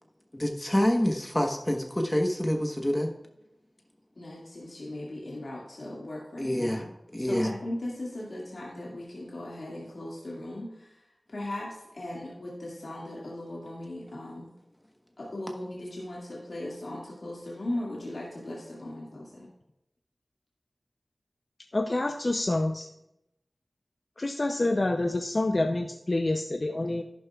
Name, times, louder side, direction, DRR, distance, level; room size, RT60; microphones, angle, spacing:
voice 1, 0.3-3.1 6.4-6.8 7.1-7.5, left 1 dB, 20° left, 3 dB, 1.1 m, -27 dB
voice 2, 4.2-6.8 7.2-10.9 11.3-14.5 15.2-19.5, left 1 dB, 75° left, -5 dB, 2.0 m, -38 dB
voice 3, 21.7-22.9 24.2-27.0, left 2 dB, 45° left, 5 dB, 0.5 m, -27 dB
11.5 x 10.5 x 2.3 m, 0.85 s
cardioid pair, 45°, 0 cm